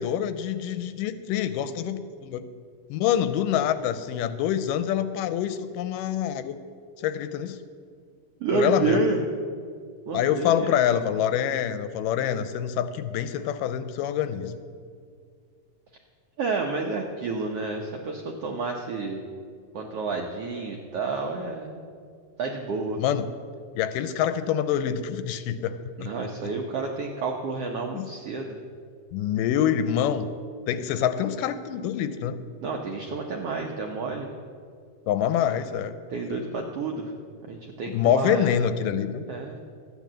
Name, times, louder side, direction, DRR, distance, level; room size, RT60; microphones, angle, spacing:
voice 1, 0.0-2.4 2.9-6.6 7.0-7.6 8.5-9.0 10.1-14.6 23.0-23.3 23.8-26.1 27.9-28.1 29.1-30.3 30.7-32.4 35.1-35.9 37.9-39.2, left 9 dB, 80° left, 11 dB, 2.1 m, -26 dB
voice 2, 8.4-9.2 10.1-10.7 16.4-19.2 19.7-21.9 22.4-23.0 26.0-28.6 32.6-34.3 36.1-37.1 37.5-38.5 39.3-39.6, right 3 dB, 75° right, 1 dB, 1.3 m, -29 dB
13.5 x 9.1 x 7.4 m, 2.1 s
omnidirectional pair, 3.9 m